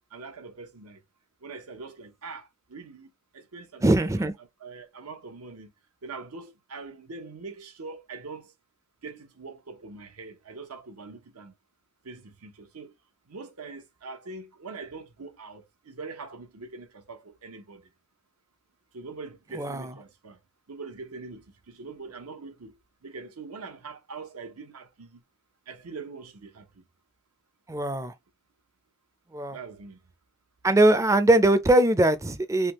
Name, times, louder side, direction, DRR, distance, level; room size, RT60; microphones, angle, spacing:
voice 1, 0.1-1.0 1.4-3.9 4.2-4.3 4.6-5.7 6.0-8.5 9.0-11.5 12.0-12.9 13.3-17.9 18.9-20.4 20.7-25.2 25.7-26.9 29.5-30.0, right 4 dB, 85° right, 0.9 m, -43 dB
voice 2, 3.8-4.3 19.6-19.9 27.7-28.1 29.3-29.6 30.6-32.7, right 1 dB, 15° right, 0.4 m, -21 dB
3.4 x 2.3 x 2.9 m
head